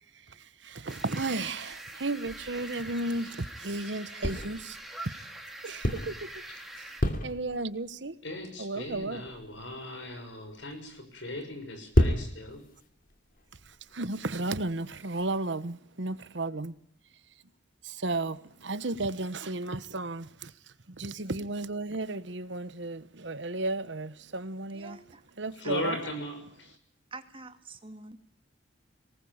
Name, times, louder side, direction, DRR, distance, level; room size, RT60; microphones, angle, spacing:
voice 1, 0.3-4.8 5.0-5.1 5.6-6.3 7.2-8.1 8.6-9.3 13.9-16.7 17.8-20.5 20.9-25.0 25.4-26.0, right 2 dB, 70° right, 1.2 m, -34 dB
sound 1, 0.9-7.0, right 1 dB, ahead, 2.9 m, -44 dB
sound 2, 1.5-3.8 4.2-4.8 5.5-6.5 6.8-7.9 8.4-8.6 8.9-15.4, equal, 50° left, 2.6 m, -32 dB
voice 2, 8.2-12.6 25.6-26.7, left 1 dB, 70° left, 6.4 m, -38 dB
voice 3, 24.7-25.2 25.6-25.7 27.1-28.2, right 3 dB, 30° right, 2.0 m, -46 dB
23.0 x 19.5 x 8.7 m
head